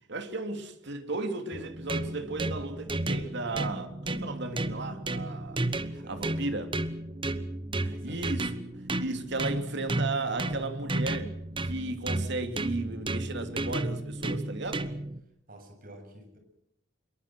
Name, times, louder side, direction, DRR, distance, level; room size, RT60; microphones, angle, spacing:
voice 1, 0.1-5.6 5.9-6.7 7.8-8.6 9.0-11.3 11.6-14.8, right 2 dB, 65° right, 3.0 m, -35 dB
sound 1, 1.5-15.2, right 2 dB, 25° right, 1.2 m, -33 dB
voice 2, 7.9-8.3 15.5-16.4, right 1 dB, 50° right, 7.5 m, -50 dB
25.5 x 22.5 x 6.2 m
head